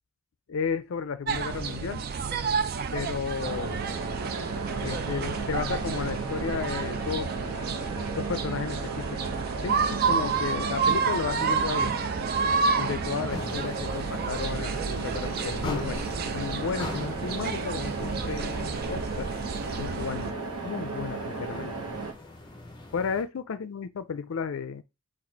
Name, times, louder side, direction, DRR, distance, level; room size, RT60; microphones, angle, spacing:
voice 1, 0.5-2.0 2.9-3.8 4.8-7.3 8.1-9.3 9.6-11.9 12.8-16.0 16.3-19.3 19.8-20.3 20.6-21.7 22.9-24.8, left 6 dB, 65° left, 0.4 m, -33 dB
sound 1, 1.3-20.3, right 5 dB, 45° right, 0.4 m, -30 dB
sound 2, 3.4-22.1, right 3 dB, 85° right, 0.9 m, -35 dB
sound 3, 13.3-23.2, left 2 dB, 20° left, 0.7 m, -42 dB
4.1 x 2.5 x 4.5 m
head